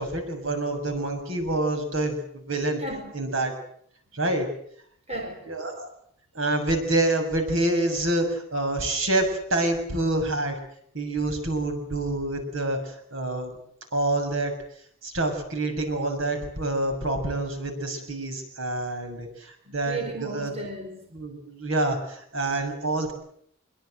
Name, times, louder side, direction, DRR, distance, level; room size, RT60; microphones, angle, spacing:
voice 1, 0.0-2.8 3.1-3.5 4.1-4.5 5.5-5.9 6.3-10.6 10.9-13.6 13.9-14.5 15.0-20.5 21.1-23.1, right 2 dB, 65° right, 6 dB, 6.8 m, -27 dB
voice 2, 2.8-3.1 5.1-5.5 19.9-21.2, right 2 dB, 30° right, 4 dB, 4.7 m, -35 dB
24.5 x 23.5 x 7.9 m, 0.65 s
head